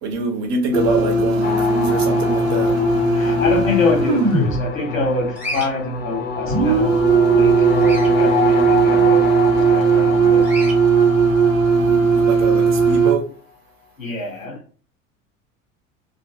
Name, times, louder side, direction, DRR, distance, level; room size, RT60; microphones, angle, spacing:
voice 1, 0.0-2.7 11.8-13.3, right 4 dB, 45° right, 0.8 m, -25 dB
sound 1, 0.7-4.6 6.5-13.1, right 4 dB, 80° right, 0.7 m, -17 dB
sound 2, 1.4-12.6, left 5 dB, 25° left, 0.6 m, -27 dB
voice 2, 3.1-7.0 7.3-7.7 8.1-10.5 14.0-14.6, left 3 dB, 85° left, 0.7 m, -26 dB
Bird vocalization bird call bird song, 5.4-5.7 7.8-8.1 10.4-10.8, equal, 5° right, 0.9 m, -29 dB
2.5 x 2.4 x 2.3 m
figure-of-eight pair, 65°, 39 cm